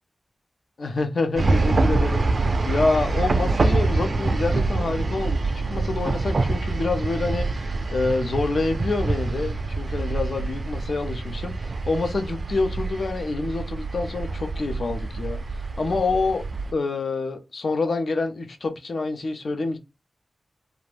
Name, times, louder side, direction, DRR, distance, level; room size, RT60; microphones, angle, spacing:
voice 1, 0.8-16.4 16.7-19.8, left 3 dB, 75° left, 0.5 m, -27 dB
sound 1, 1.4-16.7, right 3 dB, 60° right, 0.4 m, -25 dB
2.5 x 2.1 x 3.2 m
wide cardioid pair, 75°, 0 cm